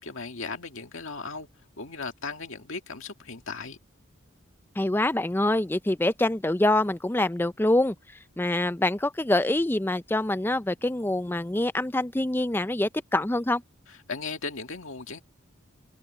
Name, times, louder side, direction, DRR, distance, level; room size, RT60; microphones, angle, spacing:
voice 1, 0.0-1.5 1.8-3.8 14.1-15.2, left 4 dB, 75° left, 1.8 m, -36 dB
voice 2, 4.8-8.0 8.4-13.6, left 1 dB, 10° left, 0.4 m, -25 dB
head